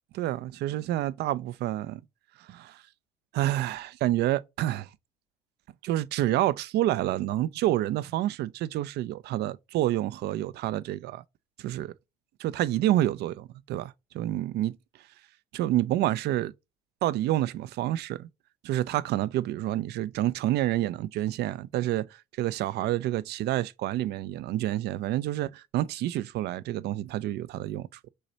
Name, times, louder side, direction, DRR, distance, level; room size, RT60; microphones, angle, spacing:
voice 1, 0.1-2.0 2.5-2.8 3.3-4.9 5.8-11.2 11.6-11.9 12.4-14.8 15.5-16.5 17.0-18.3 18.6-22.1 22.4-28.1, right 14 dB, 55° right, 0.5 m, -28 dB
6.3 x 2.9 x 2.7 m
hypercardioid pair, 70°, 20 cm